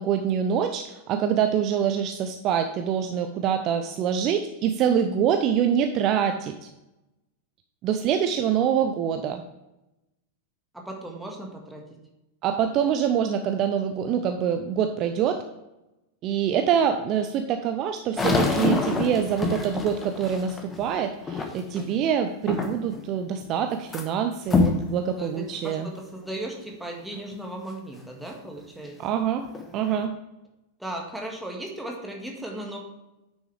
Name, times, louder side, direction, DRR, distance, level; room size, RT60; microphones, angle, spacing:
voice 1, 0.0-6.7 7.8-9.4 12.4-15.4 16.2-25.9 29.0-29.4 29.7-30.1, right 8 dB, 35° right, 6 dB, 0.6 m, -25 dB
voice 2, 10.7-11.8 25.2-29.0 30.8-32.8, right 1 dB, 5° right, 0 dB, 1.8 m, -36 dB
sound 1, 18.2-21.9 22.5-23.0 23.4-24.0 24.5-24.8 25.5-25.6 26.3-26.4 28.8-28.9 29.4-30.0, left 3 dB, 15° left, 1.2 m, -26 dB
9.4 x 6.3 x 3.4 m, 0.96 s
figure-of-eight pair, 90°, 0 cm